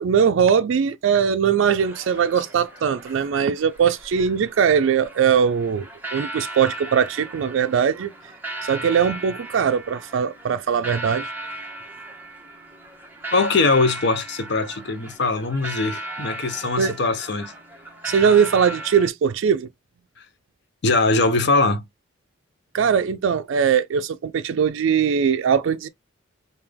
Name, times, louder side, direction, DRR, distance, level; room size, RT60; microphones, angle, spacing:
voice 1, 0.0-5.9 6.1-8.1 8.6-11.3 16.8-16.9 18.0-19.7 22.7-25.9, right 7 dB, 70° right, 0.3 m, -20 dB
sound 1, 1.8-19.1, right 2 dB, 10° right, 0.9 m, -37 dB
voice 2, 13.3-17.5 20.8-21.8, left 3 dB, 55° left, 0.6 m, -21 dB
3.3 x 2.7 x 3.5 m
head